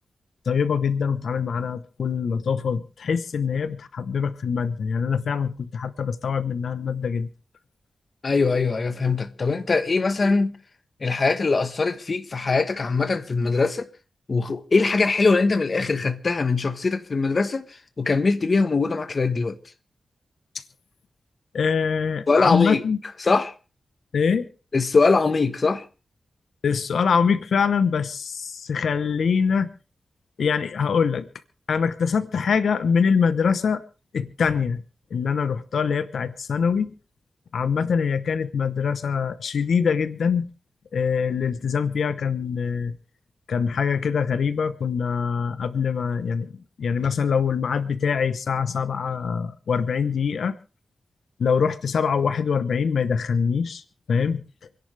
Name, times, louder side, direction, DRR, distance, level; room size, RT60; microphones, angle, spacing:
voice 1, 0.5-7.3 20.5-20.6 21.5-23.0 24.1-24.5 26.6-29.7 30.4-31.3 31.7-33.8 34.1-34.8 35.1-36.9 37.5-40.5 40.9-43.0 43.5-46.5 46.8-50.6 51.4-53.8 54.1-54.4, left 6 dB, 85° left, 0.9 m, -24 dB
voice 2, 8.2-10.5 11.0-13.9 14.3-17.7 18.0-19.6 22.3-22.8 23.2-23.5 24.7-25.8, left 4 dB, 40° left, 1.2 m, -22 dB
28.0 x 11.0 x 3.3 m
wide cardioid pair, 135°, 0 cm